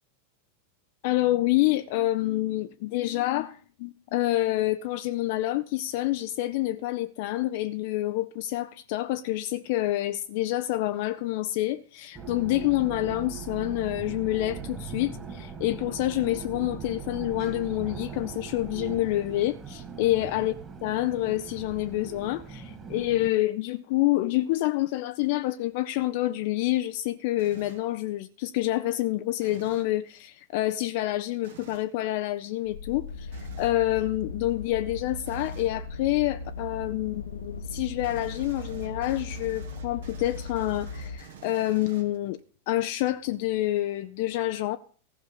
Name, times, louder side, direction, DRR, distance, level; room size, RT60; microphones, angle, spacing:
voice 1, 1.0-20.5 20.8-42.4 42.7-44.8, left 16 dB, 50° left, 0.5 m, -27 dB
sound 1, 12.1-23.3, right 6 dB, 20° right, 2.3 m, -40 dB
sound 2, 27.4-27.9 29.4-29.9 31.4-31.9 33.3-33.8 35.3-35.8 38.0-42.4, right 8 dB, 60° right, 1.6 m, -49 dB
sound 3, 32.6-41.2, left 3 dB, 85° left, 1.2 m, -38 dB
15.0 x 5.6 x 8.0 m
figure-of-eight pair, 90°, 0 cm